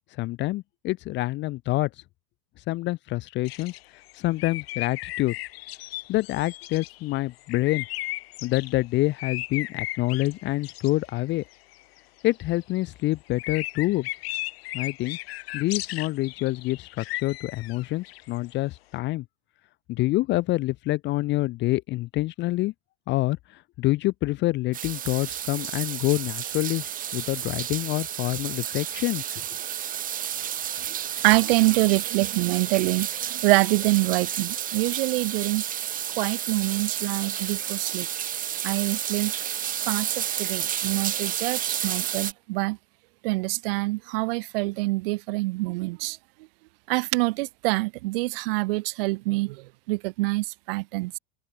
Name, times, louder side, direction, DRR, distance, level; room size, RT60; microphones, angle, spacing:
voice 1, 0.1-1.9 2.6-3.7 4.1-5.4 6.1-7.9 8.4-11.4 12.2-14.1 14.7-15.2 15.5-19.2 19.9-22.7 23.1-26.8 27.1-29.2, left 18 dB, 35° left, 0.9 m, -27 dB
sound 1, 3.5-8.7 9.2-11.2 11.5-12.7 13.3-18.5, left 18 dB, 80° left, 1.4 m, -36 dB
sound 2, 24.7-42.3, right 10 dB, 25° right, 2.3 m, -31 dB
voice 2, 31.2-35.6 36.2-38.1 38.6-39.3 39.9-42.8 43.2-46.2 46.9-51.2, right 23 dB, 70° right, 0.5 m, -25 dB
open air
supercardioid pair, 140°, 30 cm